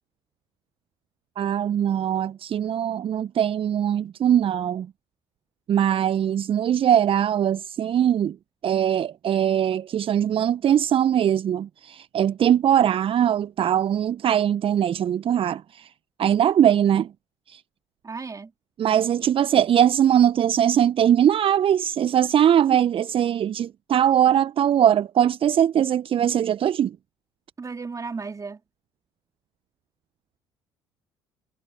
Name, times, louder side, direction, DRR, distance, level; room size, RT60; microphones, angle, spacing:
voice 1, 1.4-4.9 5.7-8.4 8.6-15.9 16.2-17.1 17.5-17.6 18.8-27.0, right 10 dB, 40° right, 1.1 m, -21 dB
voice 2, 18.0-18.5 27.6-28.6, right 4 dB, 25° right, 2.8 m, -34 dB
figure-of-eight pair, 55°, 14 cm